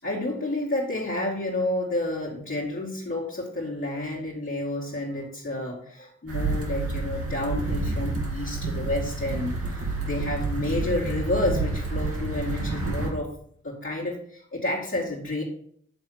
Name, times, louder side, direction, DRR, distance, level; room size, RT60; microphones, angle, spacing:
voice 1, 0.0-13.3 13.6-15.4, left 1 dB, 40° left, -7 dB, 2.5 m, -30 dB
sound 1, 6.3-13.1, right 3 dB, 45° right, 2.1 m, -29 dB
8.0 x 3.5 x 6.4 m, 0.63 s
supercardioid pair, 40°, 32 cm